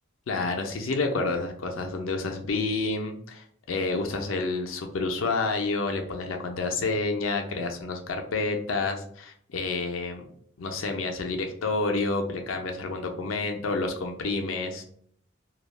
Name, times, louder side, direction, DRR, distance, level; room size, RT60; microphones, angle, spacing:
voice 1, 0.3-10.3 10.6-14.8, left 3 dB, 75° left, 3 dB, 0.5 m, -29 dB
2.3 x 2.0 x 3.1 m, 0.63 s
head